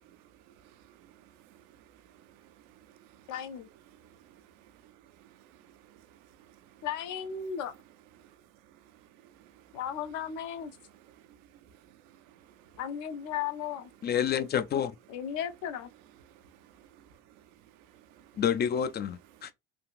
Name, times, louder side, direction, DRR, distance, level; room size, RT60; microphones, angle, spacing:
voice 1, 0.5-3.3 3.9-6.9 8.2-8.3 8.7-9.7 11.0-12.8 16.3-18.4, right 10 dB, 70° right, 0.6 m, -59 dB
voice 2, 3.3-3.7 6.8-7.7 9.7-10.7 12.8-13.9 15.1-15.9, left 9 dB, 60° left, 0.7 m, -35 dB
voice 3, 14.0-14.9 18.4-19.5, left 8 dB, 30° left, 0.4 m, -28 dB
3.4 x 2.4 x 2.4 m
hypercardioid pair, 70°, 34 cm